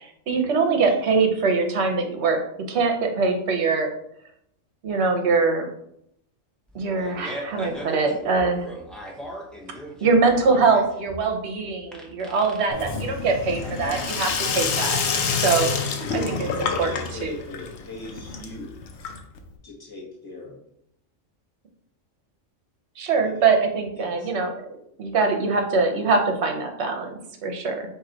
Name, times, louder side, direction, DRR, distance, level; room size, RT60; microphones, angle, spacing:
voice 1, 0.0-2.4 2.7-3.9 4.8-5.7 6.7-8.7 10.0-15.0 15.4-15.7 16.1-16.9 17.2-17.3 23.0-24.5 25.0-27.8, right 4 dB, 60° right, 4 dB, 1.0 m, -23 dB
Fart, 6.7-14.6, equal, ahead, 0.4 m, -39 dB
Sink (filling or washing), 12.7-19.5, left 5 dB, 65° left, 0.8 m, -28 dB
voice 2, 12.7-13.0 15.9-16.1 16.4-18.8 19.6-20.6 23.2-23.5 24.0-24.3, left 2 dB, 20° left, -2 dB, 0.8 m, -39 dB
4.5 x 2.8 x 3.8 m, 0.74 s
omnidirectional pair, 1.3 m